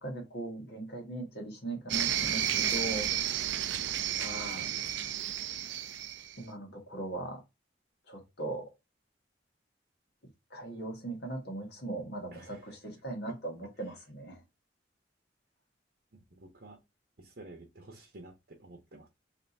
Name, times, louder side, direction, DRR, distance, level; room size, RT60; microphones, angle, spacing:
voice 1, 0.0-3.1 4.2-4.7 6.4-7.4 8.1-8.7 10.5-14.4, right 2 dB, 65° left, 1.5 m, -39 dB
sound 1, 1.9-6.4, right 10 dB, 80° right, 0.4 m, -32 dB
voice 2, 12.3-13.0 13.3-13.4 13.8-14.0 16.1-16.8 17.2-19.1, right 2 dB, 60° right, 0.9 m, -52 dB
3.3 x 2.7 x 4.1 m
head